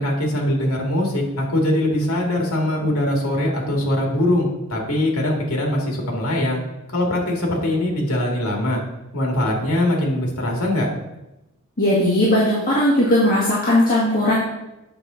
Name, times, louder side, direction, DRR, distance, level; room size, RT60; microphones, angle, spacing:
voice 1, 0.0-6.6 6.9-8.8 9.1-10.9, left 1 dB, 70° left, 0 dB, 1.9 m, -22 dB
voice 2, 11.8-14.4, left 1 dB, 40° left, -7 dB, 1.7 m, -18 dB
8.0 x 5.8 x 3.8 m, 0.96 s
head